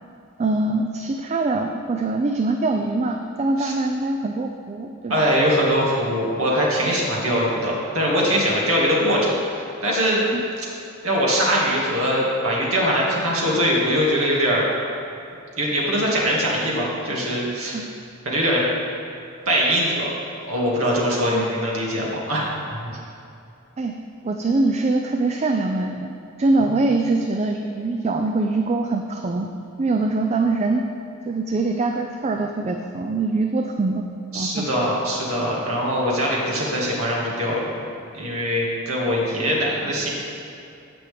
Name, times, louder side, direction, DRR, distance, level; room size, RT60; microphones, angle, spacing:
voice 1, 0.4-5.2 9.0-9.1 10.3-10.4 17.7-17.9 21.3-21.5 23.8-23.9 24.2-26.1 26.4-29.5 29.8-30.8 31.3-34.0 34.3-34.7, right 3 dB, 30° right, 4 dB, 0.4 m, -23 dB
voice 2, 5.1-10.2 11.0-14.6 15.6-17.7 18.3-18.6 19.5-20.1 20.5-22.4 22.7-22.9 26.6-26.7 34.3-37.6 38.1-40.1, equal, 75° right, -4 dB, 2.1 m, -22 dB
15.5 x 6.1 x 3.5 m, 2.6 s
head